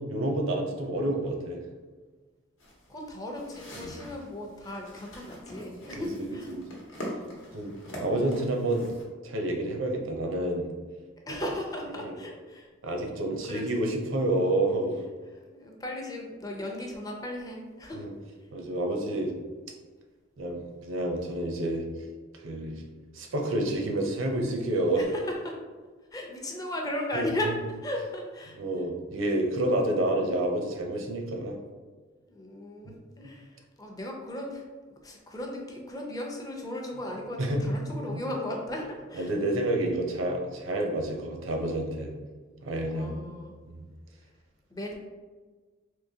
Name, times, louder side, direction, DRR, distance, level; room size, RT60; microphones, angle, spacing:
voice 1, 0.0-1.6 3.8-3.9 6.0-6.6 7.5-7.7 8.0-8.9 9.2-10.6 12.0-12.1 12.8-15.0 18.0-18.1 18.5-19.3 20.4-21.8 22.3-22.7 23.1-25.0 27.1-27.4 28.6-31.6 32.8-32.9 37.4-37.6 37.9-38.2 39.2-42.1 42.6-43.1 43.7-43.8, right 1 dB, 75° right, 2 dB, 0.6 m, -29 dB
sound 1, 2.6-9.0, equal, 70° left, 1.0 m, -43 dB
voice 2, 2.9-6.5 7.4-7.7 11.3-12.7 13.5-13.6 15.5-18.1 25.0-25.5 26.1-27.5 27.8-28.6 32.3-34.6 35.0-39.3 42.9-43.5 44.7-44.9, left 1 dB, 20° left, 0 dB, 0.5 m, -36 dB
3.7 x 2.9 x 2.7 m, 1.4 s
head